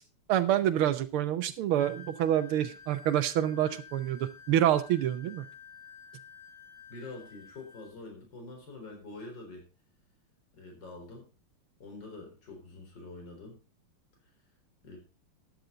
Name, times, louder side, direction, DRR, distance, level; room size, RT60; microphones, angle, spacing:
voice 1, 0.3-5.4, right 11 dB, 80° right, 11 dB, 1.7 m, -27 dB
Wind instrument woodwind instrument, 1.8-7.9, left 6 dB, 75° left, 5.0 m, -51 dB
voice 2, 6.9-9.7 10.5-11.3 11.8-13.6 14.8-15.0, left 2 dB, 55° left, 2 dB, 4.7 m, -45 dB
13.0 x 10.0 x 3.8 m, 0.31 s
omnidirectional pair, 2.3 m